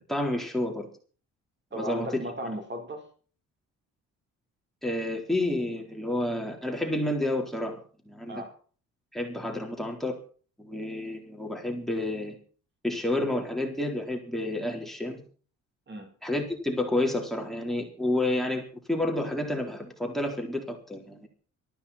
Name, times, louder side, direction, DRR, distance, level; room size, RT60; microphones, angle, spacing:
voice 1, 0.1-0.9 1.7-2.3 4.8-8.4 9.1-10.2 10.6-12.3 12.8-15.2 16.2-21.3, left 1 dB, ahead, 3 dB, 3.9 m, -30 dB
voice 2, 1.7-3.1 8.3-8.5 15.9-16.1, equal, 35° right, 4 dB, 3.9 m, -36 dB
18.5 x 14.0 x 4.3 m, 0.41 s
cardioid pair, 90°, 30 cm